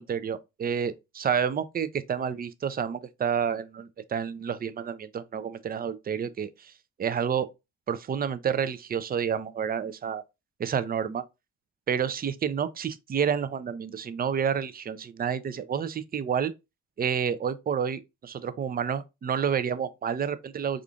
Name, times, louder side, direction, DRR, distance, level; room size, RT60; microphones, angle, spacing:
voice 1, 0.0-6.7 7.0-7.5 7.9-10.2 10.6-11.2 11.9-16.5 17.0-20.8, right 7 dB, 25° right, 0.4 m, -29 dB
3.6 x 2.5 x 2.3 m
hypercardioid pair, 40°, 37 cm